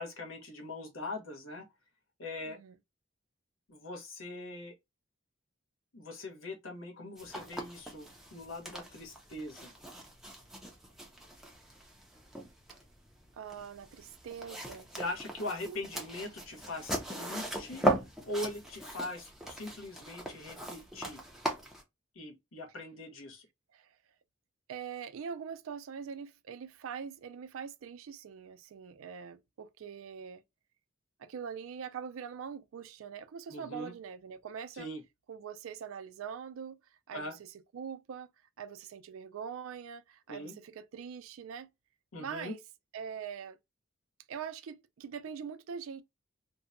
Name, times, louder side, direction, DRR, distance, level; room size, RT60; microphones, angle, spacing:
voice 1, 0.0-1.6 2.2-2.6 3.7-4.7 5.9-9.7 14.9-17.9 18.3-21.2 22.1-23.5 33.5-33.9 34.7-35.0 37.1-37.3 40.3-40.5 42.1-42.5, left 2 dB, 75° left, 0.9 m, -41 dB
sound 1, 7.2-21.8, right 1 dB, ahead, 0.4 m, -39 dB
voice 2, 13.4-14.9 15.7-15.8 23.7-24.0 24.7-30.4 31.2-34.9 35.3-36.8 37.1-38.3 38.6-41.7 42.2-42.6 42.9-43.6 44.3-46.0, right 7 dB, 80° right, 0.3 m, -43 dB
2.7 x 2.1 x 2.5 m
head